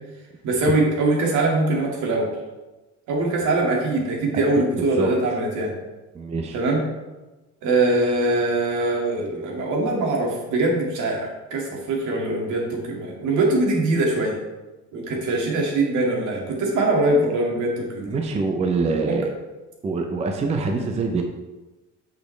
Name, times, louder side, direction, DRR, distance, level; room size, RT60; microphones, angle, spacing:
voice 1, 0.4-2.3 3.1-5.7 6.5-6.8 7.6-14.4 14.9-18.1 19.1-19.2, right 2 dB, 75° right, -1 dB, 2.1 m, -22 dB
voice 2, 6.1-6.6 18.1-19.3 19.8-21.2, right 3 dB, 20° right, 3 dB, 0.6 m, -24 dB
8.4 x 6.4 x 3.2 m, 1.1 s
cardioid pair, 170°, 30 cm